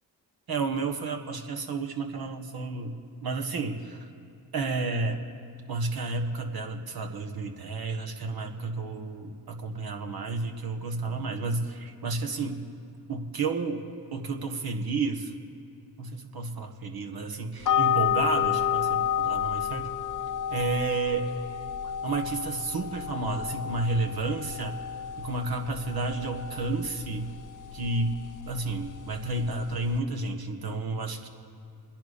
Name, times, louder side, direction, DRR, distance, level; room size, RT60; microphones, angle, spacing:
voice 1, 0.5-4.1 4.5-5.2 5.7-12.7 13.1-13.8 14.1-15.3 16.0-19.9 20.5-21.3 22.0-24.8 25.2-27.3 27.7-28.2 28.5-31.3, right 3 dB, 55° right, 5 dB, 1.5 m, -31 dB
sound 1, 17.6-30.0, left 9 dB, 45° left, 0.8 m, -31 dB
26.0 x 10.5 x 4.2 m, 2.4 s
supercardioid pair, 55°, 43 cm